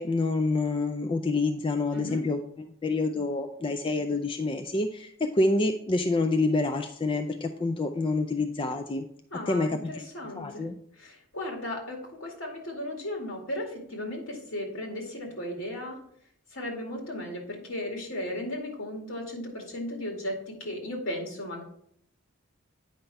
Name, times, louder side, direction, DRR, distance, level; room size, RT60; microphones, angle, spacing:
voice 1, 0.0-9.1 9.5-10.0 10.4-10.8, left 2 dB, 25° left, 6 dB, 0.4 m, -27 dB
voice 2, 9.3-10.7 11.0-16.0 16.5-21.6, left 1 dB, 70° left, 1 dB, 2.3 m, -36 dB
9.0 x 5.6 x 3.4 m, 0.68 s
head